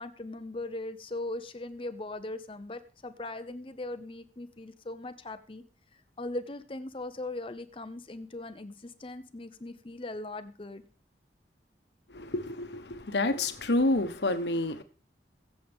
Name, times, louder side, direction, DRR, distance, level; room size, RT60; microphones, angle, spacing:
voice 1, 0.0-5.6 6.2-10.8, left 2 dB, 30° left, 0.7 m, -39 dB
voice 2, 12.1-14.8, left 2 dB, 75° left, 1.3 m, -29 dB
22.5 x 7.6 x 3.6 m
head